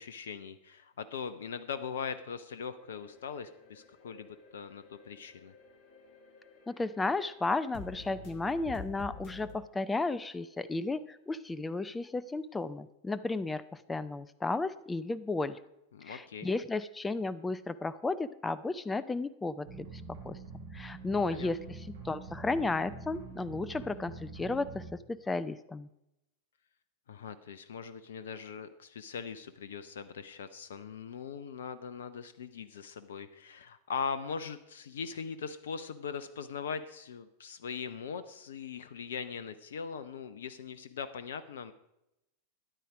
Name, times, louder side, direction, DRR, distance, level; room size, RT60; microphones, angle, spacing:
voice 1, 0.0-5.5 15.9-16.5 21.1-21.5 27.1-41.7, left 6 dB, 60° left, 13 dB, 0.6 m, -40 dB
sound 1, 2.8-9.6, left 4 dB, 40° left, 1.8 m, -50 dB
voice 2, 6.7-15.6 16.0-19.9 20.2-20.4 20.7-25.9, left 3 dB, 10° left, 16 dB, 0.5 m, -33 dB
sound 2, 19.7-24.9, right 4 dB, 60° right, 4.6 m, -46 dB
13.0 x 10.0 x 5.0 m, 0.87 s
figure-of-eight pair, 90°, 0 cm